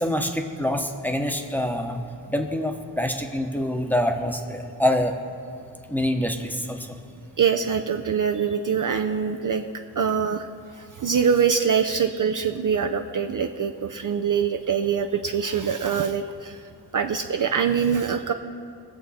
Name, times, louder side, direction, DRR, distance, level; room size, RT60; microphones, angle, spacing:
voice 1, 0.0-2.0 2.3-5.1 5.9-7.0, left 1 dB, 5° left, 3 dB, 0.9 m, -25 dB
voice 2, 7.4-9.6 10.0-10.5 10.7-18.3, right 7 dB, 45° right, 5 dB, 0.5 m, -24 dB
21.5 x 7.4 x 4.2 m, 2.6 s
wide cardioid pair, 125°, 44 cm